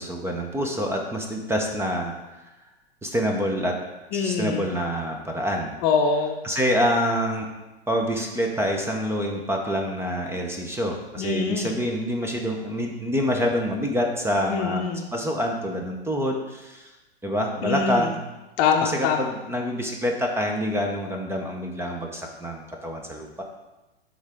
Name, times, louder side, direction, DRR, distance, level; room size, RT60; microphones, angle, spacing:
voice 1, 0.0-2.1 3.0-3.8 4.1-5.7 6.4-7.5 7.9-16.9 17.2-18.2 18.8-23.4, equal, 10° right, 2 dB, 0.8 m, -26 dB
voice 2, 4.1-4.6 5.8-6.3 11.2-11.7 14.5-15.1 17.6-18.1 18.6-19.3, left 5 dB, 40° left, 4 dB, 0.8 m, -24 dB
11.5 x 3.8 x 3.6 m, 1.1 s
hypercardioid pair, 105°, 31 cm